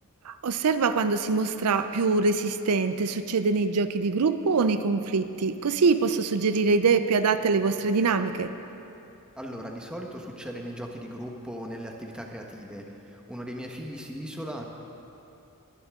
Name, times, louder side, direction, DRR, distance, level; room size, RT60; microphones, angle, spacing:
voice 1, 0.3-8.5, right 4 dB, 85° right, 10 dB, 0.5 m, -24 dB
voice 2, 9.4-14.6, equal, 5° right, 1 dB, 1.2 m, -38 dB
20.5 x 11.0 x 3.7 m, 2.8 s
head